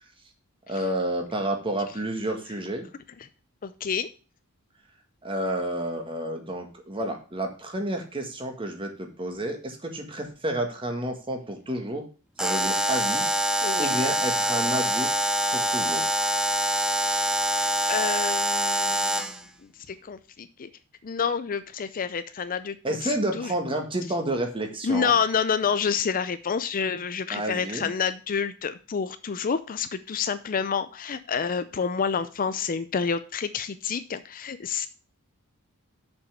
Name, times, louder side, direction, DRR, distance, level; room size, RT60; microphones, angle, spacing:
voice 1, 0.7-2.9 5.2-12.0 12.4-13.3 13.5-15.1 15.5-16.0 22.8-25.2 27.3-27.9, right 1 dB, 25° right, 4 dB, 1.6 m, -30 dB
voice 2, 3.6-4.1 13.6-14.0 17.0-19.4 19.9-20.7 21.0-22.8 23.0-23.5 24.8-34.9, left 6 dB, 40° left, 12 dB, 0.5 m, -28 dB
Alarm, 12.4-19.4, right 1 dB, 5° right, 0.6 m, -25 dB
7.0 x 5.5 x 6.6 m, 0.36 s
head